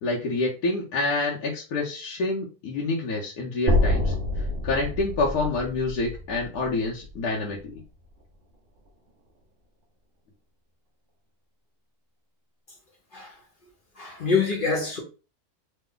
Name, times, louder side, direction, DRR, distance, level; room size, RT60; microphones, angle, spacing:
voice 1, 0.0-4.1 4.6-7.8, left 3 dB, 80° left, 1.2 m, -27 dB
sound 1, 3.7-7.9, left 1 dB, 55° right, 0.6 m, -27 dB
voice 2, 14.0-15.0, left 5 dB, 45° left, 0.8 m, -25 dB
3.2 x 2.0 x 3.6 m
omnidirectional pair, 1.6 m